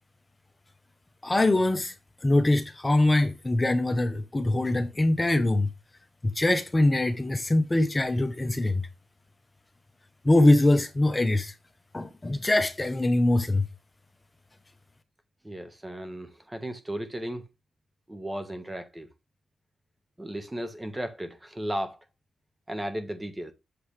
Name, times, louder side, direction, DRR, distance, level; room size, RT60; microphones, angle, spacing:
voice 1, 1.2-1.9 2.2-5.7 6.3-8.8 10.2-11.5 11.9-13.6, left 2 dB, 25° left, 1.0 m, -23 dB
voice 2, 15.4-17.4 18.1-19.1 20.2-22.0 22.7-23.5, right 1 dB, 15° right, 1.4 m, -35 dB
8.6 x 7.1 x 3.3 m
cardioid pair, 65°, 0 cm